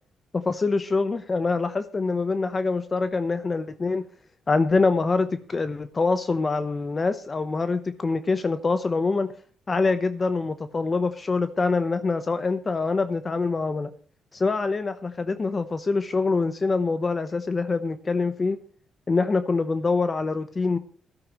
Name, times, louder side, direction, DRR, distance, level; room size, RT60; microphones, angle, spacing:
voice 1, 0.3-4.0 4.5-9.3 9.7-13.9 14.3-18.6 19.1-20.8, left 3 dB, 30° left, 11 dB, 0.8 m, -25 dB
17.0 x 12.5 x 3.1 m, 0.43 s
cardioid pair, 90°, 0 cm